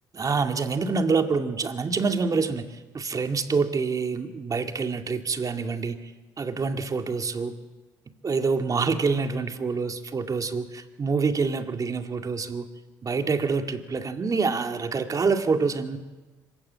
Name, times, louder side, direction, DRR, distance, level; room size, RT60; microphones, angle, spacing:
voice 1, 0.1-2.6 2.9-6.0 6.4-7.5 8.2-12.7 13.0-16.0, right 4 dB, 40° right, 7 dB, 2.2 m, -26 dB
25.5 x 15.5 x 8.8 m, 1.3 s
hypercardioid pair, 55°, 10 cm